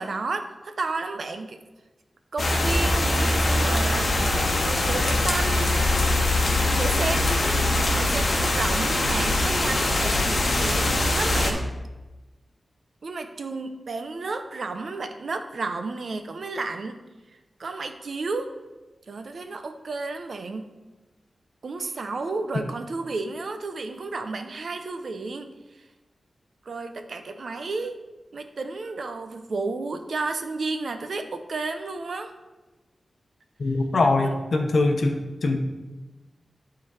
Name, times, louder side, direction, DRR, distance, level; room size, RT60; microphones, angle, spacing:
voice 1, 0.0-1.6 2.3-5.8 6.7-11.7 13.0-17.0 17.6-18.5 19.1-20.7 21.6-25.5 26.6-28.0 28.3-32.3 34.2-34.3, right 3 dB, 60° right, 7 dB, 0.6 m, -32 dB
sound 1, 2.4-11.5, left 2 dB, 45° left, 1.2 m, -22 dB
voice 2, 33.6-35.6, left 2 dB, 60° left, 4 dB, 0.9 m, -22 dB
11.0 x 3.9 x 4.8 m, 1.1 s
wide cardioid pair, 150°, 0 cm